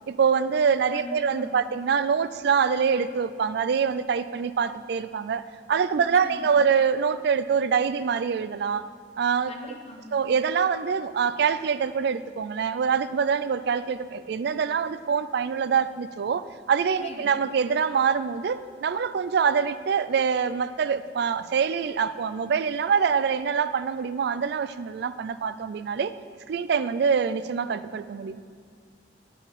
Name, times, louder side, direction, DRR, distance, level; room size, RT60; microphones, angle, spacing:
voice 1, 0.1-8.9 9.2-9.5 10.1-26.1 26.5-28.4, right 6 dB, 65° right, 13 dB, 0.4 m, -25 dB
voice 2, 0.9-1.7 6.0-6.5 9.5-10.2 16.9-17.4, left 1 dB, 40° left, 2 dB, 0.9 m, -41 dB
11.0 x 5.0 x 5.1 m, 2.2 s
head